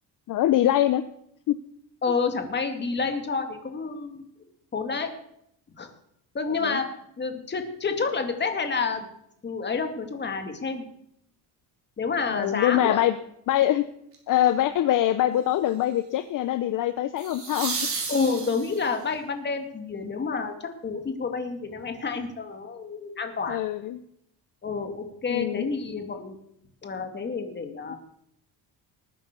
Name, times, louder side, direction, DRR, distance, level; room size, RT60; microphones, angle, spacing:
voice 1, 0.3-1.0 1.5-1.6 6.6-6.8 12.2-13.2 13.5-13.8 14.3-17.8 23.5-24.0 25.3-25.7 27.9-28.0, left 12 dB, 55° left, 11 dB, 0.8 m, -23 dB
voice 2, 2.0-4.2 4.7-5.1 5.8-5.9 6.3-6.9 7.2-9.1 9.4-10.8 12.0-13.0 18.1-23.6 24.6-26.4 26.8-28.0, left 4 dB, 25° left, 6 dB, 2.4 m, -29 dB
sound 1, 14.1-14.5 17.2-19.0 21.9-22.0, right 4 dB, 35° right, 4.6 m, -33 dB
20.0 x 9.5 x 6.8 m, 0.74 s
cardioid pair, 145°, 38 cm